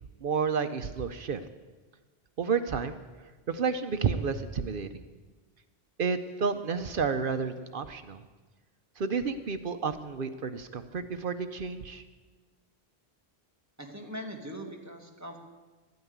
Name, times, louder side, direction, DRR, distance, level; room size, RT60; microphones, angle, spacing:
voice 1, 0.2-1.4 2.4-3.0 3.5-4.9 6.0-8.2 9.0-12.0, right 5 dB, 60° right, 9 dB, 0.9 m, -30 dB
voice 2, 13.8-15.4, equal, 15° right, 1 dB, 1.8 m, -41 dB
12.5 x 9.4 x 9.4 m, 1.3 s
omnidirectional pair, 1.0 m